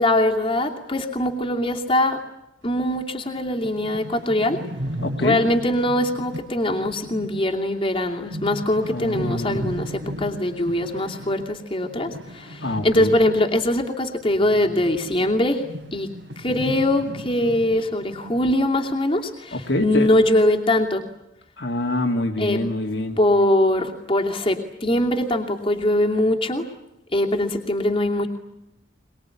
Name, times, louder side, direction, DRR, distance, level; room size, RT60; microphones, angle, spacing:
voice 1, 0.0-2.2 2.6-4.6 5.2-15.7 15.9-16.1 16.4-21.1 22.4-22.6 23.2-26.7 27.1-28.3, left 1 dB, 25° left, 2 dB, 2.7 m, -22 dB
sound 1, 2.9-3.0 3.4-3.5 3.6-13.9 14.1-18.6 18.9-19.0 19.6-20.1, equal, 75° right, 3.5 m, -36 dB
voice 2, 5.0-5.4 8.9-9.7 12.6-13.1 19.5-20.1 21.6-23.2, left 1 dB, 65° left, 2 dB, 2.4 m, -25 dB
23.0 x 21.5 x 9.9 m, 0.85 s
head